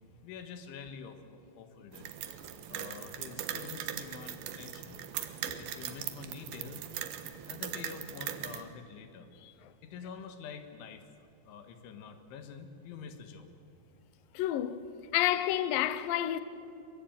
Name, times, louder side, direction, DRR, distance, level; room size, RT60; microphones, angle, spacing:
voice 1, 0.2-2.1 2.7-5.0 5.6-6.9 7.4-9.3 9.8-13.5, left 6 dB, 90° left, 4.1 m, -47 dB
sound 1, 1.9-8.6, right 10 dB, 65° right, 2.8 m, -40 dB
voice 2, 14.3-14.8 15.1-16.4, left 13 dB, 75° left, 2.1 m, -29 dB
23.0 x 23.0 x 8.9 m
omnidirectional pair, 5.3 m